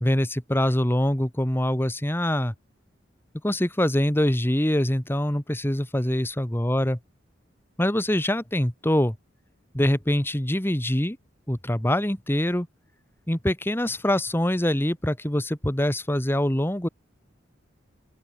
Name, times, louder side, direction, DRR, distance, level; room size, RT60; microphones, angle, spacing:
voice 1, 0.0-2.5 3.4-7.0 7.8-9.1 9.7-11.2 11.5-12.7 13.3-16.9, left 1 dB, 10° left, 1.5 m, -24 dB
open air
head